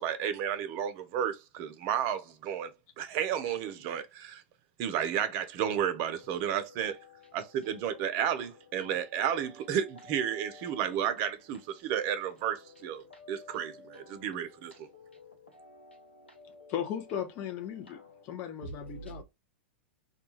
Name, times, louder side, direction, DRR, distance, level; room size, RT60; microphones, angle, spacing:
voice 1, 0.0-2.7 3.0-4.4 4.8-7.0 7.3-14.9, right 9 dB, 45° right, 0.5 m, -32 dB
voice 2, 10.0-10.8 13.2-14.0 15.6-16.0 16.4-16.8 18.8-19.2, equal, 90° left, 0.7 m, -49 dB
voice 3, 16.7-19.2, left 9 dB, 40° left, 0.6 m, -37 dB
2.3 x 2.2 x 3.0 m
figure-of-eight pair, 95°, 6 cm